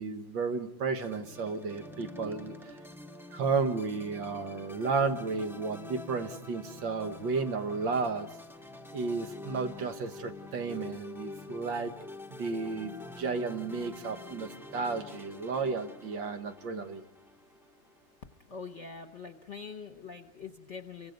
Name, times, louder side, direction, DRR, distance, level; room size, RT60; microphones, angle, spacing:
voice 1, 0.0-2.7 3.3-8.3 8.9-11.9 12.4-17.0, right 4 dB, 85° right, 7 dB, 2.0 m, -33 dB
sound 1, 1.0-18.4, left 2 dB, 5° right, 0.5 m, -47 dB
voice 2, 18.5-21.1, left 5 dB, 45° left, 6 dB, 1.2 m, -44 dB
29.5 x 24.5 x 5.3 m, 0.77 s
omnidirectional pair, 2.0 m